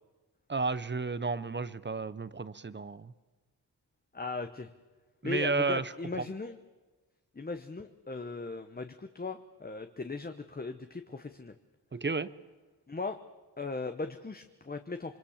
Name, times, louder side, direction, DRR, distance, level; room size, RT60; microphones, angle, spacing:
voice 1, 0.5-3.1 5.2-5.9 6.2-6.3 11.9-12.3, right 4 dB, 30° right, 16 dB, 0.8 m, -32 dB
voice 2, 4.1-4.7 5.2-6.6 7.3-11.5 12.9-13.2 13.6-15.2, left 3 dB, 25° left, 7 dB, 1.0 m, -38 dB
26.5 x 24.0 x 7.2 m, 1.3 s
wide cardioid pair, 130°, 39 cm